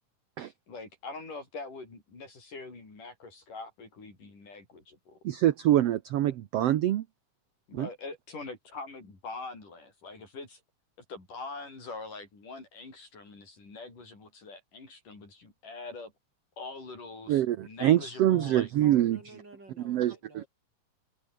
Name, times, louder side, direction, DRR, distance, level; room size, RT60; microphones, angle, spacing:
voice 1, 0.7-5.2 7.7-10.6 11.1-16.1 16.6-18.7, left 3 dB, 80° left, 9.7 m, -43 dB
voice 2, 5.2-7.0 7.7-7.9 17.3-19.2 19.9-20.1, right 13 dB, 65° right, 1.7 m, -25 dB
voice 3, 18.8-20.5, right 2 dB, 30° right, 8.0 m, -51 dB
omnidirectional pair, 3.7 m